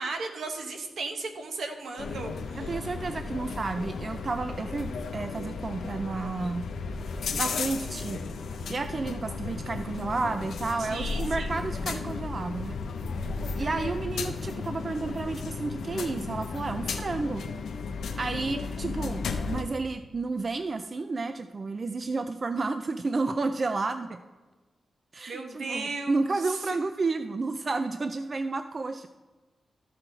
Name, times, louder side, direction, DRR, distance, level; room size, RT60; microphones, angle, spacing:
voice 1, 0.0-2.8 10.8-11.5 25.3-26.8, right 3 dB, 75° right, 5 dB, 1.1 m, -36 dB
sound 1, 2.0-19.6, left 4 dB, 85° left, 0.7 m, -34 dB
voice 2, 2.6-6.7 7.4-8.2 8.7-12.8 13.6-17.4 18.2-24.2 25.1-29.1, right 3 dB, 40° right, 9 dB, 0.3 m, -31 dB
13.5 x 6.1 x 3.3 m, 1.2 s
wide cardioid pair, 110°, 0 cm